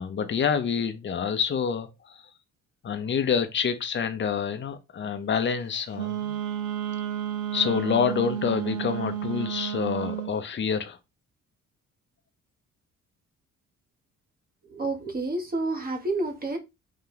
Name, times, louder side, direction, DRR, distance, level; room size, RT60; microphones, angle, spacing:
voice 1, 0.0-2.2 2.8-6.4 7.5-11.0, left 7 dB, 40° left, 0.8 m, -27 dB
Wind instrument woodwind instrument, 5.9-10.3, right 10 dB, 75° right, 0.7 m, -31 dB
voice 2, 14.7-16.6, right 2 dB, 30° right, 1.3 m, -29 dB
4.3 x 2.4 x 3.8 m
cardioid pair, 90°, 30 cm